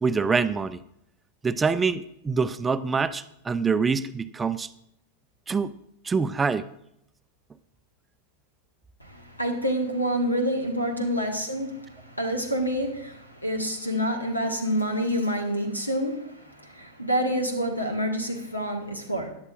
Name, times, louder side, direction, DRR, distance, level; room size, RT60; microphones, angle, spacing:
voice 1, 0.0-0.8 1.4-4.7 5.5-5.7 6.0-6.7, right 5 dB, 15° right, 14 dB, 0.4 m, -25 dB
voice 2, 9.0-19.3, equal, 85° left, 4 dB, 1.5 m, -28 dB
16.0 x 10.5 x 2.5 m, 0.78 s
figure-of-eight pair, 90°, 0 cm